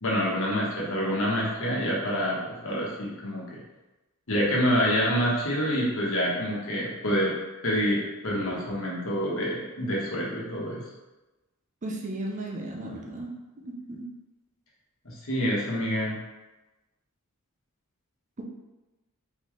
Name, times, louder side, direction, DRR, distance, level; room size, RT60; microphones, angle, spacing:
voice 1, 0.0-3.6 4.3-7.3 7.6-10.8 15.0-16.2, equal, 65° left, -4 dB, 1.2 m, -27 dB
voice 2, 11.8-13.3 13.6-14.0, right 1 dB, 35° right, 0 dB, 0.6 m, -35 dB
4.1 x 3.9 x 3.1 m, 1.1 s
head